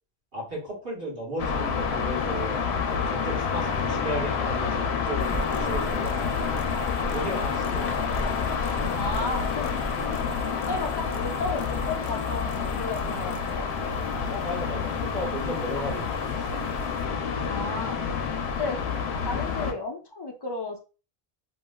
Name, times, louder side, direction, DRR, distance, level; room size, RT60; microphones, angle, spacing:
voice 1, 0.3-2.6 2.9-6.7 7.1-8.0 14.2-16.6, equal, 65° right, -3 dB, 1.7 m, -35 dB
sound 1, 1.4-19.7, left 6 dB, 90° left, 0.8 m, -28 dB
sound 2, 5.2-17.0, equal, 50° right, 0.4 m, -39 dB
voice 2, 8.9-9.8 10.0-10.2 10.5-13.7 17.5-18.0 18.6-18.8 19.2-20.8, left 3 dB, 45° left, 2 dB, 0.3 m, -33 dB
3.1 x 2.6 x 2.2 m, 0.34 s
omnidirectional pair, 1.1 m